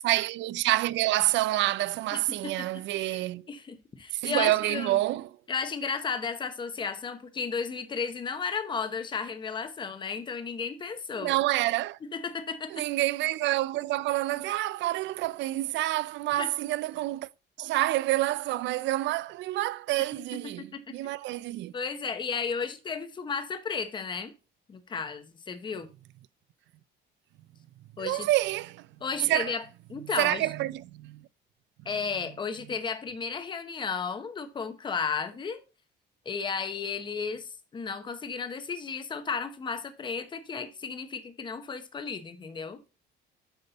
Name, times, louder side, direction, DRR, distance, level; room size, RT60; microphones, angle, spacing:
voice 1, 0.0-3.5 4.1-5.3 11.2-12.0 12.7-17.3 17.6-21.7 28.0-28.9 29.3-29.6 30.2-31.3, right 16 dB, 70° right, 0.4 m, -28 dB
voice 2, 2.1-3.2 3.5-5.0 5.5-11.4 12.1-12.8 16.4-16.5 20.6-20.9 21.7-24.3 24.7-25.9 28.0-28.3 29.0-29.6 29.9-30.5 31.8-35.6 36.2-42.8, left 5 dB, 25° left, 0.9 m, -34 dB
8.1 x 5.3 x 4.0 m
cardioid pair, 160°, 20 cm